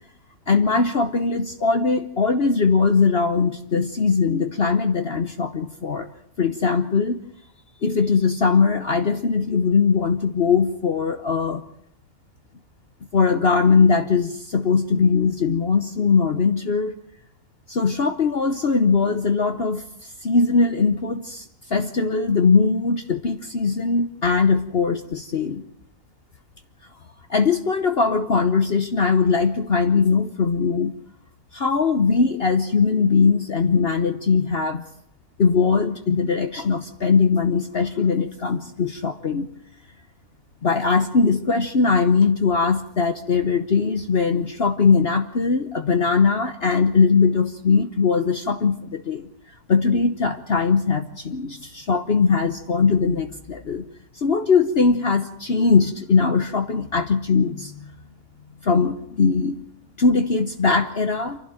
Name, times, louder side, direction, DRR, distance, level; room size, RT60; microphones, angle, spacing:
voice 1, 0.5-6.1 6.4-7.2 7.8-11.6 13.1-16.9 17.7-19.8 20.2-25.6 27.3-30.9 31.5-34.8 35.4-39.5 40.6-49.3 49.7-53.9 54.1-57.9 58.6-59.6 60.0-61.4, left 5 dB, 45° left, 8 dB, 1.2 m, -20 dB
28.0 x 12.0 x 8.9 m, 0.76 s
omnidirectional pair, 1.5 m